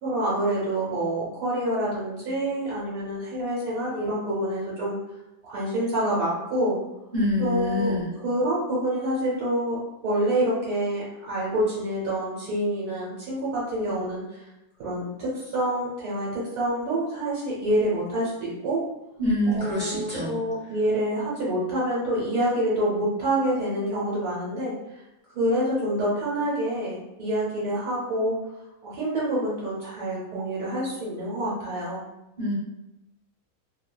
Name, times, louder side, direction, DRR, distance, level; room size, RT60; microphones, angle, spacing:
voice 1, 0.0-5.0 5.4-6.8 7.4-9.8 10.0-14.5 14.8-18.8 19.5-24.7 25.3-28.4 28.8-32.0, right 1 dB, 80° right, -8 dB, 1.2 m, -27 dB
voice 2, 7.1-8.1 19.2-20.4 32.4-32.5, left 1 dB, 30° right, -9 dB, 0.9 m, -25 dB
2.7 x 2.1 x 2.2 m, 0.92 s
omnidirectional pair, 1.6 m